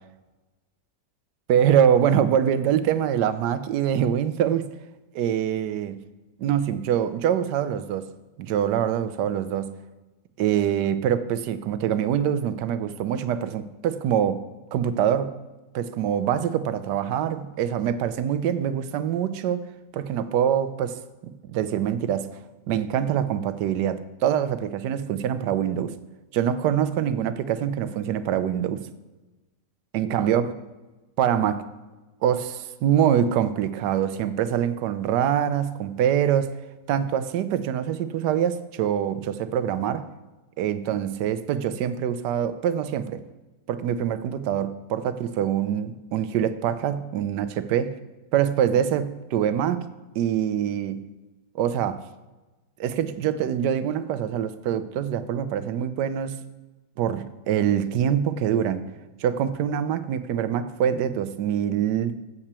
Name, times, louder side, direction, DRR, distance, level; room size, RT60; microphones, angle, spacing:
voice 1, 1.5-4.7 5.1-6.0 6.4-8.1 8.4-9.7 10.4-14.4 14.7-15.3 15.7-19.6 19.9-21.0 21.5-22.3 22.7-26.0 26.3-28.9 29.9-30.5 31.2-31.6 32.2-36.6 36.9-40.0 40.6-43.2 43.7-47.9 48.3-49.8 50.2-51.1 51.5-52.0 52.8-56.4 57.0-58.9 59.2-62.1, right 9 dB, 90° right, 13 dB, 1.2 m, -24 dB
8.0 x 5.7 x 6.7 m, 1.1 s
omnidirectional pair, 1.8 m